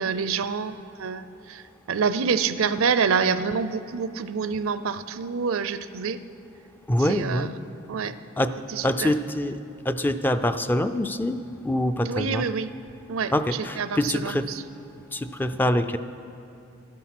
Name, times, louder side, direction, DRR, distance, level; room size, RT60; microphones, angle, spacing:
voice 1, 0.0-6.2 7.0-7.6 7.9-8.1 8.7-9.1 12.0-12.7 13.1-14.6, right 5 dB, 75° right, 13 dB, 0.5 m, -27 dB
voice 2, 6.9-7.5 8.4-8.5 8.8-9.6 9.9-12.4 13.3-14.5 15.1-16.0, left 1 dB, 10° left, 9 dB, 0.3 m, -25 dB
13.5 x 11.5 x 6.0 m, 2.6 s
head